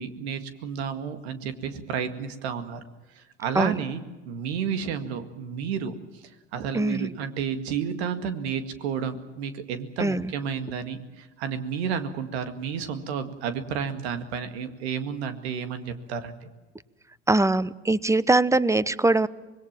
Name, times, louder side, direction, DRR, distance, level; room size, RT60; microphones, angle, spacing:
voice 1, 0.0-2.8 3.2-6.0 6.5-16.5, right 7 dB, 90° right, 10 dB, 2.0 m, -31 dB
voice 2, 6.7-7.1 10.0-10.3 17.3-19.3, right 2 dB, 10° right, 18 dB, 0.9 m, -22 dB
25.5 x 20.0 x 7.4 m, 1.2 s
supercardioid pair, 80°, 32 cm